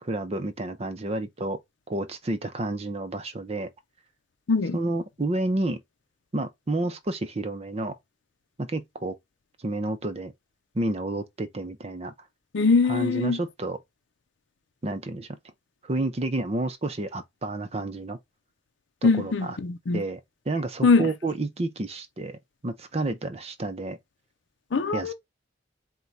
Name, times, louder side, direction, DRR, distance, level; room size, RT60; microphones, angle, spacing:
voice 1, 0.0-1.6 1.9-3.7 4.7-5.8 6.3-8.0 8.6-9.2 9.6-10.3 10.7-12.1 12.9-13.8 14.8-15.3 15.8-18.2 19.0-19.6 19.9-20.2 20.5-24.0 24.9-25.1, right 2 dB, 35° right, 0.6 m, -30 dB
voice 2, 12.5-13.4 19.0-20.0 20.8-21.1 24.7-25.1, left 4 dB, 75° left, 0.6 m, -22 dB
4.6 x 2.2 x 3.9 m
head